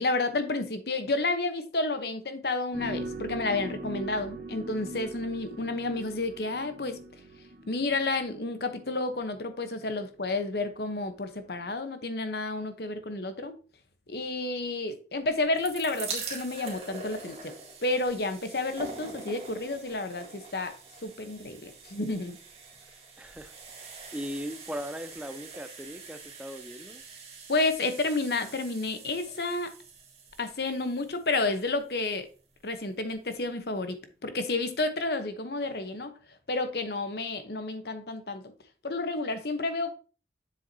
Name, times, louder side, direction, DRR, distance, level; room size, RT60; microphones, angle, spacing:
voice 1, 0.0-7.0 7.7-13.5 14.1-17.5 17.8-20.7 21.0-22.4 27.5-29.7 30.4-32.3 32.6-33.9 34.2-36.1 36.5-38.5 38.8-40.0, left 2 dB, 65° left, 0.9 m, -30 dB
sound 1, 2.7-9.1 9.9-10.0 10.9-11.0 11.7-11.8, right 2 dB, 55° right, 1.2 m, -41 dB
sound 2, 15.3-32.3 33.1-33.2 33.4-33.5, right 4 dB, 35° right, 1.9 m, -44 dB
voice 2, 22.8-27.0, equal, 5° right, 0.4 m, -39 dB
7.4 x 7.0 x 2.7 m
head